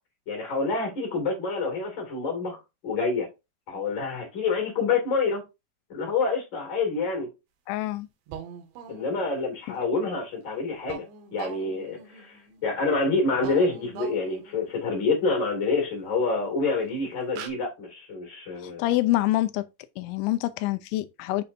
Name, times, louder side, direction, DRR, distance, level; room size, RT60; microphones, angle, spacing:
voice 1, 0.3-3.3 3.7-5.4 5.9-7.3 8.9-11.0 11.3-18.8, left 3 dB, 35° left, 2.4 m, -27 dB
voice 2, 7.7-8.1 9.7-9.8 18.6-19.7 20.0-21.4, left 16 dB, 90° left, 3.1 m, -26 dB
sound 1, 8.3-9.4 10.9-12.9 13.3-14.8 16.4-16.5 16.9-17.0 17.3-17.5, right 7 dB, 85° right, 3.6 m, -42 dB
8.3 x 6.8 x 2.7 m
omnidirectional pair, 5.2 m